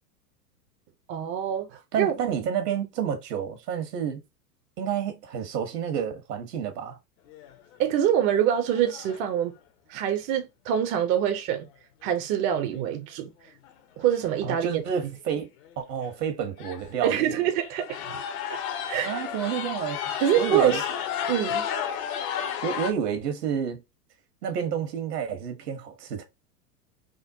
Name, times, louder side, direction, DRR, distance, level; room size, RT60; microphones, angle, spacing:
voice 1, 1.1-2.1 7.8-9.5 9.9-11.7 12.0-13.3 14.0-14.8 17.0-18.2 18.5-18.6 18.9-19.2 20.2-20.8 21.3-21.7, right 10 dB, 30° right, 0.5 m, -25 dB
voice 2, 1.9-4.2 4.8-7.0 14.4-15.5 15.8-17.3 19.0-20.0 20.4-20.8 22.6-23.8 24.4-26.2, right 8 dB, 75° right, 1.2 m, -29 dB
sound 1, 7.3-7.7 8.2-8.3 8.7-9.3 12.5-12.6 13.7-13.8 14.0-14.4 14.8-14.9 15.6-15.7 16.0-16.2 16.6-17.0 17.6-22.9, left 8 dB, 60° left, 0.9 m, -32 dB
3.6 x 2.2 x 2.6 m
hypercardioid pair, 115°, 48 cm